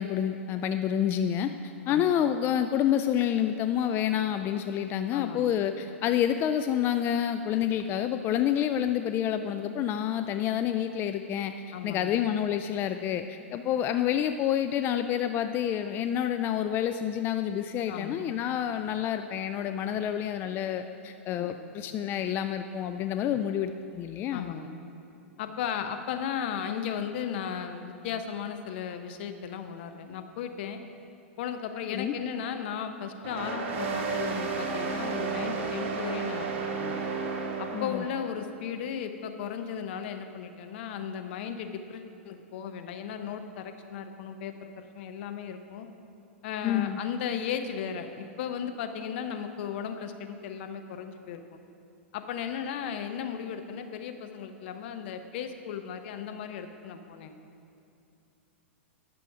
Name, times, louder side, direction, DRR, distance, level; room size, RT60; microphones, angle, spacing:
voice 1, 0.0-1.5 1.9-11.5 11.8-24.5 31.9-32.1 37.7-38.0 46.6-47.0, left 10 dB, 30° left, 8 dB, 0.3 m, -28 dB
voice 2, 1.9-2.2 5.1-5.5 11.7-12.1 17.9-18.2 21.3-21.5 24.3-24.7 25.4-30.8 31.4-37.1 37.6-45.9 46.4-51.6 52.1-57.4, left 8 dB, 55° left, 8 dB, 0.7 m, -36 dB
sound 1, 33.2-38.3, right 4 dB, 55° right, 1.4 m, -32 dB
10.5 x 6.9 x 4.9 m, 2.7 s
hypercardioid pair, 110°, 7 cm